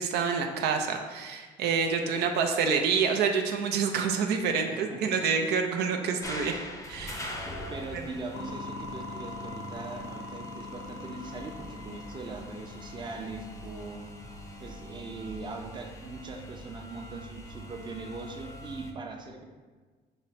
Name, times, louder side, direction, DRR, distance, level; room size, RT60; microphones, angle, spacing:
voice 1, 0.0-6.6 6.9-7.5, right 5 dB, 80° right, 4 dB, 0.5 m, -27 dB
voice 2, 4.6-5.0 7.7-14.1 14.6-19.5, right 3 dB, 25° right, 3 dB, 0.6 m, -41 dB
sound 1, 6.2-18.9, left 1 dB, 20° left, 0.5 m, -43 dB
sound 2, 8.3-15.6, left 3 dB, 80° left, 0.4 m, -43 dB
5.8 x 2.1 x 4.1 m, 1.4 s
cardioid pair, 110°, 17 cm